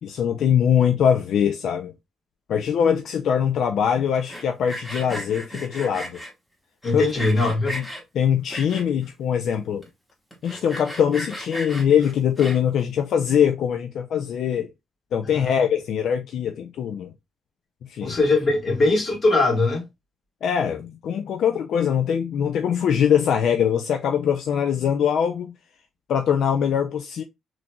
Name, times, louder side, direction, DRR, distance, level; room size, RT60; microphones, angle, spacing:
voice 1, 0.0-1.9 2.5-6.2 6.9-7.2 7.7-7.8 8.1-9.8 10.4-14.7 15.1-17.1 17.9-18.2 20.4-25.5 26.1-27.2, left 8 dB, 70° left, 0.4 m, -22 dB
Sawing, 4.1-6.3 6.8-8.0 8.5-9.1 9.5-9.6 9.8-9.9 10.3-12.8, equal, 5° left, 1.2 m, -35 dB
voice 2, 6.8-7.8 15.2-15.6 18.0-19.8, left 2 dB, 40° left, 1.8 m, -21 dB
3.8 x 3.0 x 2.2 m
cardioid pair, 90°, 0 cm